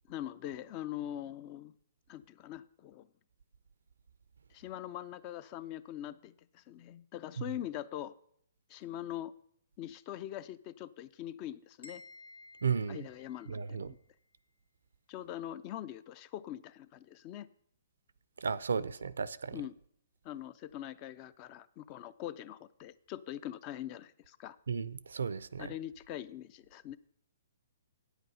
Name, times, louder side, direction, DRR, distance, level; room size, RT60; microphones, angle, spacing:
voice 1, 0.1-1.7 2.1-3.1 4.5-8.1 8.7-9.3 9.8-12.0 12.9-14.0 15.1-17.5 19.5-19.7 20.2-24.6 25.6-27.0, left 12 dB, 35° left, 0.4 m, -43 dB
sound 1, 11.8-13.8, left 2 dB, 80° left, 2.0 m, -55 dB
voice 2, 12.6-13.0 13.5-13.9 18.4-19.6 24.7-25.7, right 6 dB, 80° right, 0.4 m, -34 dB
9.1 x 8.1 x 5.5 m
hypercardioid pair, 140°, 0 cm